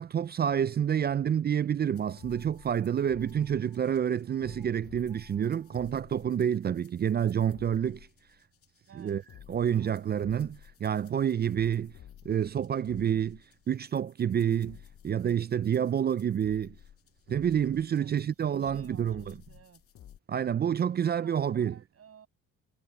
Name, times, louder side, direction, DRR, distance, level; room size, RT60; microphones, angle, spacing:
voice 1, 0.0-8.1 9.0-9.2 9.5-11.9 12.2-13.4 13.7-14.8 15.0-16.8 17.3-19.3 20.3-21.7, right 9 dB, 35° right, 0.4 m, -28 dB
sound 1, 2.0-20.2, left 10 dB, 50° left, 0.6 m, -53 dB
sound 2, 2.0-3.8 4.3-4.7 5.0-5.9, right 1 dB, 10° right, 1.9 m, -66 dB
voice 2, 8.9-9.2 9.8-10.3 17.9-19.8 20.8-22.3, right 7 dB, 50° right, 7.5 m, -56 dB
cardioid pair, 90°, 30 cm